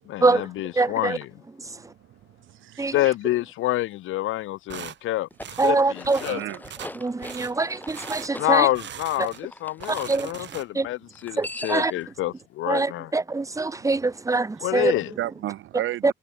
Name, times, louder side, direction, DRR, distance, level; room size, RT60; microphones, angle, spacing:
voice 1, 0.1-1.3 2.9-5.3 5.6-6.4 8.4-13.1 14.6-15.1, left 15 dB, 85° left, 1.0 m, -27 dB
voice 2, 0.8-1.2 2.8-3.0 5.6-6.2 6.9-8.7 9.9-10.3 10.7-10.9 11.4-11.9 12.7-14.9, right 3 dB, 15° right, 1.0 m, -24 dB
voice 3, 2.5-3.1 6.2-6.6 7.2-7.4 13.7-13.8 15.2-16.1, right 14 dB, 80° right, 1.5 m, -33 dB
sound 1, 4.7-5.0 5.4-5.8 6.0-6.4 6.6-6.9 7.2-7.5 7.9-8.3 8.7-9.5 9.7-10.9, right 10 dB, 65° right, 4.5 m, -40 dB
sound 2, 5.2-10.1 11.1-12.0, left 1 dB, 10° left, 2.3 m, -41 dB
cardioid pair, 90°, 20 cm